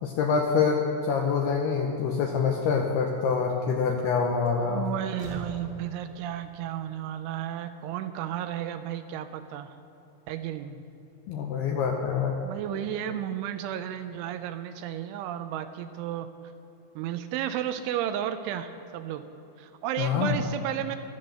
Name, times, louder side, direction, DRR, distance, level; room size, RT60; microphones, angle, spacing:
voice 1, 0.0-4.9 11.3-12.4 20.0-20.4, left 5 dB, 80° left, 2 dB, 2.4 m, -26 dB
Slam, 4.0-4.1 4.4-6.3, right 2 dB, 60° left, 1.0 m, -44 dB
voice 2, 4.6-9.8 10.3-10.7 12.4-16.3 17.0-19.2 19.6-21.0, right 10 dB, 80° right, 10 dB, 2.9 m, -33 dB
17.0 x 13.0 x 6.6 m, 2.9 s
omnidirectional pair, 5.8 m